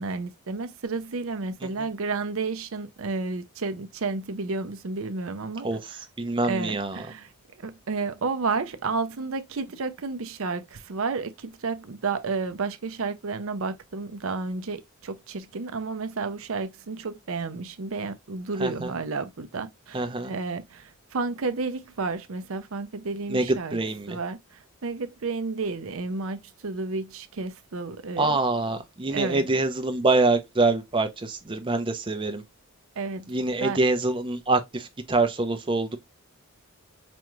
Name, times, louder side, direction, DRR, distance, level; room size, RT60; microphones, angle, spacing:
voice 1, 0.0-5.7 6.5-23.8 24.1-28.4 29.1-29.5 33.0-33.3 33.6-33.8, right 4 dB, 65° right, 0.6 m, -31 dB
voice 2, 5.6-7.0 18.6-18.9 19.9-20.3 23.3-24.2 28.2-32.4 33.3-36.0, right 2 dB, 25° right, 0.6 m, -25 dB
5.1 x 2.4 x 3.0 m
head